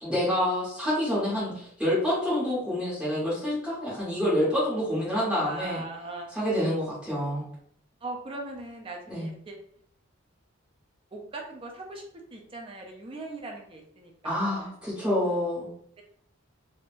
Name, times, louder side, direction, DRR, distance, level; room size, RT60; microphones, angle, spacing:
voice 1, 0.0-5.8 6.3-7.5 9.1-9.3 14.2-15.7, left 1 dB, 5° right, -9 dB, 1.2 m, -27 dB
voice 2, 5.4-6.3 8.0-9.6 11.1-12.0 12.3-14.7, right 2 dB, 25° right, 1 dB, 0.4 m, -39 dB
3.5 x 2.5 x 2.5 m, 0.63 s
head